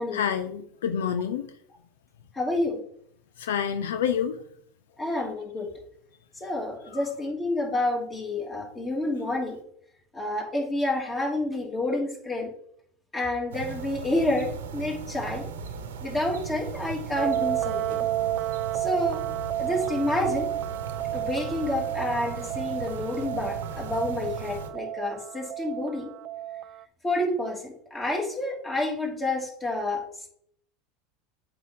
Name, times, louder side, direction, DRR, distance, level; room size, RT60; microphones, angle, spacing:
voice 1, 0.1-1.5 3.4-4.4 6.9-7.0, left 8 dB, 85° left, 10 dB, 0.6 m, -28 dB
voice 2, 2.3-2.8 5.0-5.7 6.4-9.6 10.1-12.5 13.1-15.5 16.0-18.0 18.7-19.2 19.6-20.5 21.1-26.1 27.0-30.3, left 2 dB, 20° left, 0 dB, 2.9 m, -29 dB
sound 1, 13.5-24.7, right 6 dB, 90° right, 1.1 m, -38 dB
sound 2, 17.2-26.8, right 13 dB, 50° right, 0.4 m, -31 dB
8.4 x 5.8 x 3.7 m, 0.67 s
hypercardioid pair, 100°, 0 cm